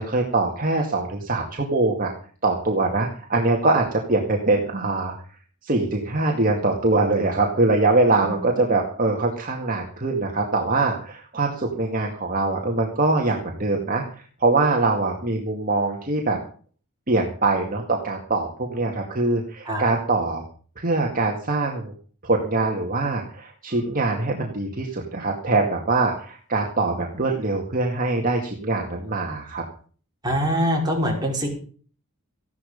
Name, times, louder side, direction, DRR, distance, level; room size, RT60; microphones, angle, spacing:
voice 1, 0.0-2.1 2.4-5.1 5.6-14.0 14.4-16.4 17.1-20.4 20.8-21.9 22.2-29.6, right 2 dB, 40° right, 1 dB, 2.2 m, -23 dB
voice 2, 30.2-31.5, equal, 20° right, -1 dB, 5.8 m, -23 dB
15.5 x 12.0 x 5.4 m, 0.43 s
head